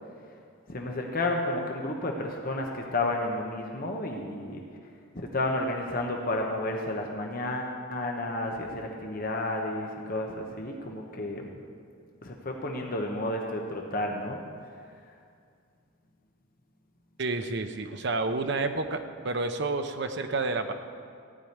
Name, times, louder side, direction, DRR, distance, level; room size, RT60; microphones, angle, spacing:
voice 1, 0.7-4.6 5.1-11.5 12.2-14.4, left 2 dB, 45° left, 1 dB, 1.0 m, -31 dB
voice 2, 17.2-19.0 19.2-20.7, right 3 dB, 55° right, 7 dB, 0.7 m, -29 dB
15.0 x 5.0 x 9.3 m, 2.3 s
head